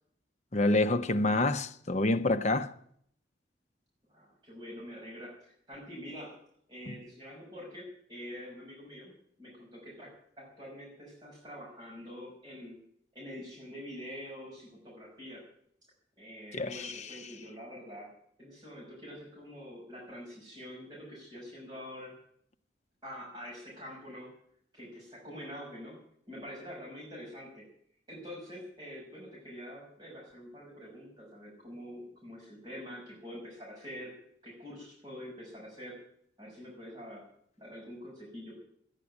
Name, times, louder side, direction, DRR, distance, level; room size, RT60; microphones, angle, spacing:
voice 1, 0.5-2.7 6.9-7.0 16.5-17.1, left 2 dB, 40° left, 0.8 m, -28 dB
voice 2, 4.1-6.3 6.7-9.1 9.4-12.8 13.1-15.4 16.2-18.1 18.4-22.1 23.0-24.3 24.7-26.0 26.3-27.6 28.1-34.1 34.4-36.0 36.4-37.2 37.6-38.5, equal, 25° right, 5.8 m, -46 dB
13.0 x 10.0 x 9.6 m
head